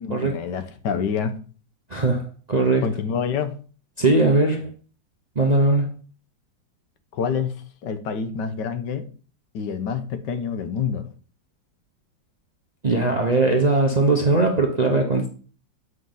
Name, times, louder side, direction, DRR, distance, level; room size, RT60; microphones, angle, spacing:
voice 1, 0.0-1.3 2.8-3.5 7.1-7.5 7.8-9.0 9.5-11.0, left 6 dB, 70° left, 1.5 m, -27 dB
voice 2, 1.9-2.9 4.0-4.7 5.4-5.9 12.8-15.3, right 2 dB, 35° right, 0.6 m, -20 dB
7.9 x 5.3 x 3.8 m
omnidirectional pair, 2.0 m